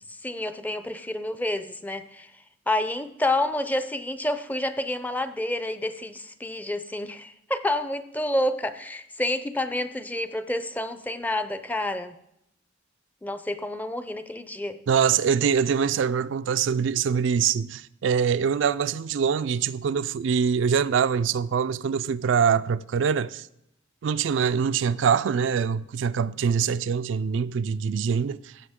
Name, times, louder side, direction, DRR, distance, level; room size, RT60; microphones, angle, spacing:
voice 1, 0.2-2.3 2.7-12.2 13.2-14.8, left 1 dB, 10° left, 0.5 m, -29 dB
voice 2, 14.9-23.5 24.0-28.5, right 6 dB, 70° right, 0.3 m, -24 dB
16.0 x 7.5 x 3.6 m
head